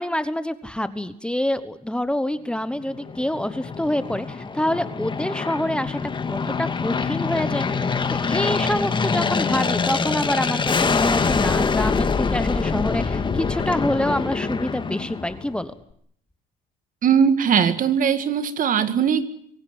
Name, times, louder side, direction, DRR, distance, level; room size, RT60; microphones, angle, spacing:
voice 1, 0.0-6.0 6.3-15.7, left 1 dB, 5° left, 13 dB, 1.1 m, -26 dB
Aircraft, 2.9-15.6, left 5 dB, 30° left, 2.1 m, -25 dB
voice 2, 17.0-19.2, right 7 dB, 50° right, 12 dB, 2.0 m, -19 dB
25.0 x 17.5 x 9.5 m, 0.67 s
cardioid pair, 110°, 17 cm